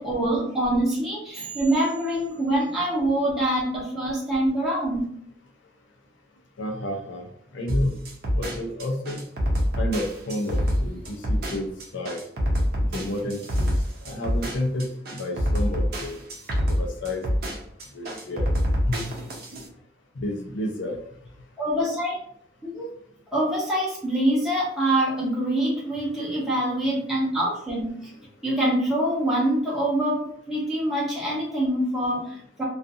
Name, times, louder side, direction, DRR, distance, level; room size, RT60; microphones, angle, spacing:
voice 1, 0.0-5.1 21.6-22.2 22.6-22.9 23.3-28.1 28.4-32.6, right 1 dB, ahead, -8 dB, 0.7 m, -25 dB
voice 2, 6.6-7.2 7.5-8.0 8.3-9.3 9.8-12.2 12.9-13.7 14.0-16.2 16.7-17.2 17.9-18.5 18.9-19.1 20.2-21.0, left 1 dB, 80° left, 2 dB, 0.5 m, -30 dB
sound 1, 7.7-19.7, equal, 50° right, 0.6 m, -26 dB
2.4 x 2.3 x 2.6 m, 0.66 s
head